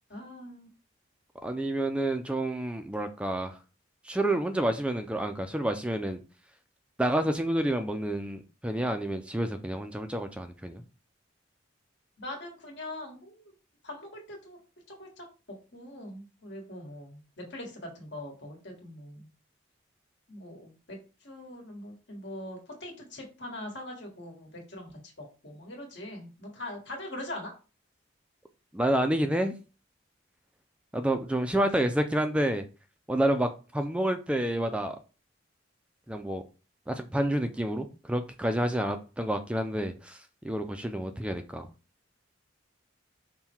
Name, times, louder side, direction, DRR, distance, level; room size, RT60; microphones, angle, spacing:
voice 1, 0.1-0.7 12.2-13.5 13.8-14.6 14.9-15.2 15.7-19.3 20.3-27.5, left 1 dB, 60° left, 0 dB, 1.6 m, -42 dB
voice 2, 1.4-3.6 4.0-6.2 7.0-10.8 28.7-29.5 30.9-32.6 33.1-35.0 36.1-36.4 36.9-41.7, right 1 dB, 5° right, 7 dB, 0.3 m, -29 dB
5.5 x 2.2 x 4.4 m, 0.33 s
head